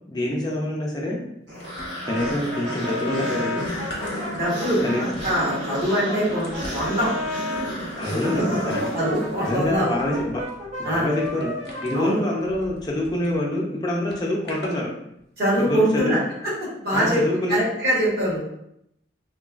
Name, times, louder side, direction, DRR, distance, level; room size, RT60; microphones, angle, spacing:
voice 1, 0.1-1.2 2.0-3.7 4.8-5.0 8.0-8.9 9.4-10.4 10.8-11.6 11.8-14.9 15.6-16.1 16.9-17.6, left 1 dB, 25° left, -2 dB, 0.4 m, -26 dB
sound 1, 1.5-9.9, equal, 85° right, 1.2 m, -32 dB
sound 2, 1.6-2.7 3.0-13.4 14.1-14.8 15.5-15.7, equal, 65° left, 0.7 m, -41 dB
Brass instrument, 2.0-7.7 8.2-13.0, left 1 dB, 40° right, 0.7 m, -33 dB
voice 2, 4.3-7.1 8.1-10.2 10.8-11.1 11.9-12.2 15.4-17.2 17.5-18.4, equal, 55° right, -8 dB, 1.2 m, -24 dB
3.1 x 2.2 x 2.4 m, 0.77 s
head